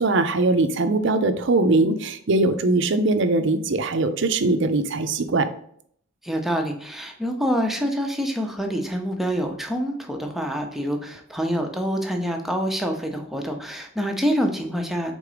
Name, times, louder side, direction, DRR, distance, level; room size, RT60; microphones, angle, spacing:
voice 1, 0.0-5.5, right 2 dB, 60° right, 9 dB, 0.6 m, -21 dB
voice 2, 6.2-15.1, equal, ahead, 3 dB, 0.7 m, -26 dB
5.0 x 3.8 x 4.9 m, 0.64 s
head